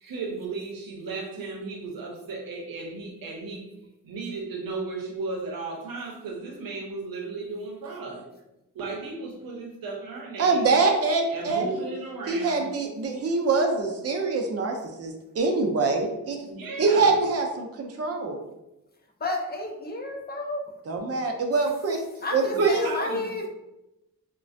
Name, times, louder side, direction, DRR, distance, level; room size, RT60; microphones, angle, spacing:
voice 1, 0.0-3.7 4.0-8.3 8.7-10.7 11.3-12.7 16.4-17.2 22.4-23.3, right 3 dB, 80° right, 0 dB, 0.8 m, -35 dB
voice 2, 10.4-11.9 12.3-16.4 16.8-18.4 20.9-22.0 22.3-22.8, right 3 dB, 45° right, 3 dB, 0.5 m, -24 dB
voice 3, 19.2-20.7 22.2-23.5, left 2 dB, 30° left, 2 dB, 0.5 m, -31 dB
3.2 x 2.2 x 2.6 m, 0.93 s
cardioid pair, 95°, 34 cm